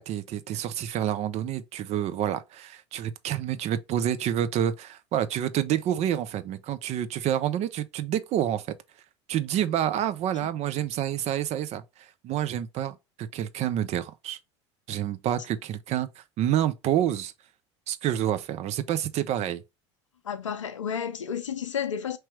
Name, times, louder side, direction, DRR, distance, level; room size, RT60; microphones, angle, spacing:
voice 1, 0.0-8.6 9.3-11.8 12.2-14.4 14.9-17.3 17.9-19.6, right 11 dB, 45° right, 0.6 m, -28 dB
voice 2, 20.2-22.2, left 7 dB, 90° left, 0.5 m, -31 dB
4.7 x 3.0 x 2.9 m
hypercardioid pair, 75°, 16 cm